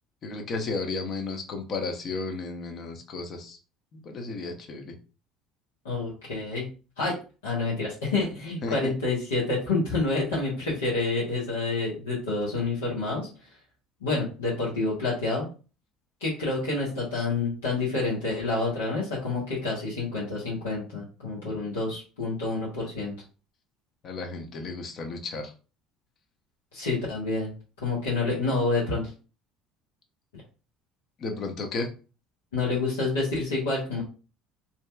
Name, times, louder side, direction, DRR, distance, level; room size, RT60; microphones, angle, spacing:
voice 1, 0.2-3.6 3.9-5.0 8.6-8.9 24.0-25.5 31.2-31.9, left 3 dB, 50° left, 4 dB, 0.7 m, -33 dB
voice 2, 5.8-6.7 7.0-7.2 7.4-13.3 14.0-15.5 16.2-23.1 26.7-27.5 27.8-29.1 32.5-34.0, left 3 dB, 90° left, -7 dB, 0.9 m, -28 dB
2.7 x 2.3 x 2.2 m, 0.35 s
hypercardioid pair, 65°, 0 cm